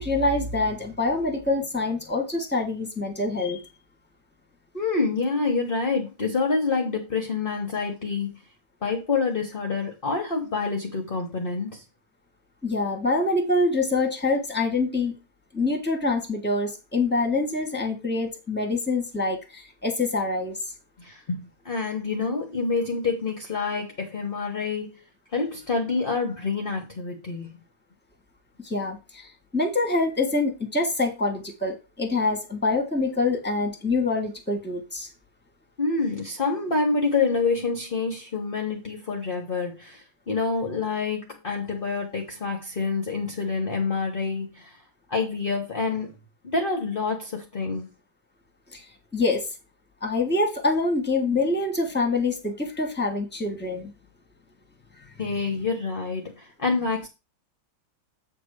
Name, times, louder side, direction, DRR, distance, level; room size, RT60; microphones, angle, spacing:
voice 1, 0.0-3.6 12.6-15.1 15.5-20.5 28.6-29.3 29.5-35.1 48.7-48.8 49.1-49.4 50.0-53.9, left 2 dB, 5° left, 1.7 m, -25 dB
voice 2, 4.7-8.4 8.8-11.8 21.0-25.0 25.3-27.6 35.8-44.8 45.1-46.1 46.4-47.9 55.2-57.1, left 4 dB, 30° left, 1.2 m, -27 dB
8.4 x 3.6 x 6.6 m
omnidirectional pair, 2.2 m